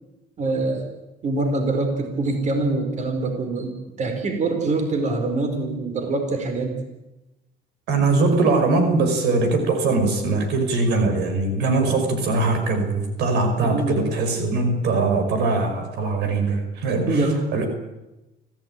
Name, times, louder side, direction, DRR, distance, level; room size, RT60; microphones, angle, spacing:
voice 1, 0.4-0.9 1.2-3.7 4.0-6.8 13.6-14.0 17.1-17.5, right 2 dB, 45° right, 6 dB, 4.6 m, -24 dB
voice 2, 7.9-17.7, right 3 dB, 80° right, 6 dB, 5.4 m, -21 dB
25.5 x 16.0 x 9.1 m, 1.0 s
cardioid pair, 110°, 17 cm